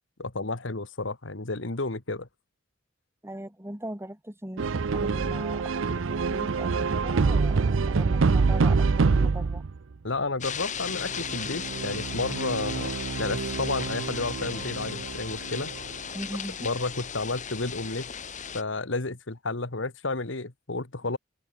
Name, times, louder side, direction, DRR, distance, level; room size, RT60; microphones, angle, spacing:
voice 1, 0.2-2.3 10.0-12.9 13.2-15.7 16.6-18.1 18.5-21.2, left 3 dB, 70° left, 1.8 m, -31 dB
voice 2, 3.2-9.6 16.1-16.7, right 1 dB, 15° right, 3.0 m, -39 dB
sound 1, 4.6-9.8 10.9-15.8, right 4 dB, 90° right, 0.6 m, -26 dB
sound 2, 10.4-18.6, left 8 dB, 40° left, 1.5 m, -36 dB
head